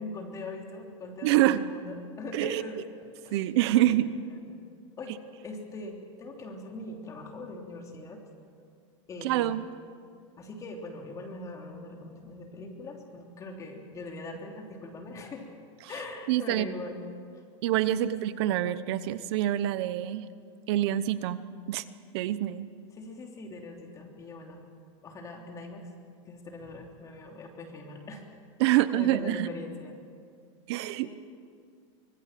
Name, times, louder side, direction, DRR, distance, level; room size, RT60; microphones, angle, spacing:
voice 1, 0.0-2.8 3.2-4.1 4.5-4.6 5.0-5.2 5.4-8.2 9.1-9.7 10.4-15.4 15.9-17.0 17.3-17.4 17.9-18.1 22.9-24.6 25.0-25.9 26.3-28.2 28.7-29.9 31.0-31.1, left 2 dB, 20° left, 2 dB, 3.1 m, -41 dB
voice 2, 1.2-1.6 2.3-2.6 3.3-4.1 9.2-9.7 16.3-16.7 17.6-20.3 20.7-21.4 21.7-21.8 22.1-22.7 28.6-29.5 30.7-31.1, right 14 dB, 55° right, 14 dB, 0.9 m, -26 dB
25.0 x 20.0 x 7.6 m, 2.3 s
supercardioid pair, 160°, 16 cm